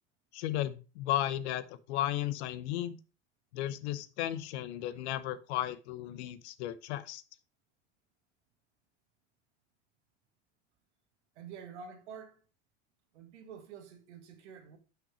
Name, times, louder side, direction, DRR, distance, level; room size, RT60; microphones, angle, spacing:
voice 1, 0.3-3.0 3.5-7.2, left 13 dB, 70° left, 0.8 m, -34 dB
voice 2, 11.3-12.4 13.1-14.8, right 6 dB, 80° right, 1.5 m, -48 dB
5.9 x 5.8 x 4.7 m
hypercardioid pair, 75°, 35 cm